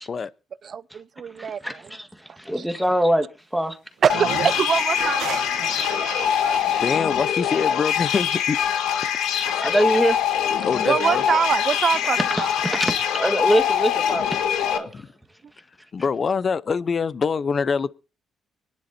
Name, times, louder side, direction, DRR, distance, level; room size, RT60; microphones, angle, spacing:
voice 1, 0.6-1.8 2.6-2.7 4.0-5.4 5.7-6.6 10.8-13.1, right 7 dB, 50° right, 0.5 m, -25 dB
voice 2, 1.4-2.1 2.4-3.3 3.5-3.8 9.6-10.2 12.6-15.0, equal, ahead, 1.7 m, -23 dB
sound 1, 4.0-7.0, right 10 dB, 85° right, 1.0 m, -34 dB
sound 2, 4.1-14.8, left 9 dB, 90° left, 1.2 m, -23 dB
voice 3, 6.5-8.6 9.1-9.2 9.5-9.6 10.6-11.2 14.8-15.1 15.9-17.9, left 5 dB, 45° left, 0.8 m, -25 dB
24.5 x 10.5 x 2.7 m
cardioid pair, 90°, 0 cm